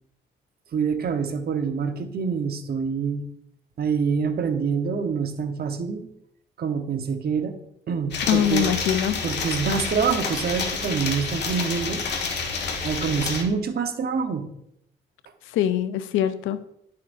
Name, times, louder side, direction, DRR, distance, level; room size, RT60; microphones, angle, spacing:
voice 1, 0.7-3.3 3.8-6.1 6.6-7.6 7.9-8.7 9.2-12.0 12.8-14.5, right 6 dB, 50° right, 7 dB, 1.0 m, -26 dB
sound 1, 8.1-13.4, left 4 dB, 60° left, 1.5 m, -29 dB
voice 2, 8.3-9.2 15.5-16.6, left 11 dB, 90° left, 13 dB, 0.6 m, -23 dB
10.5 x 6.8 x 2.6 m, 0.75 s
cardioid pair, 90°, 20 cm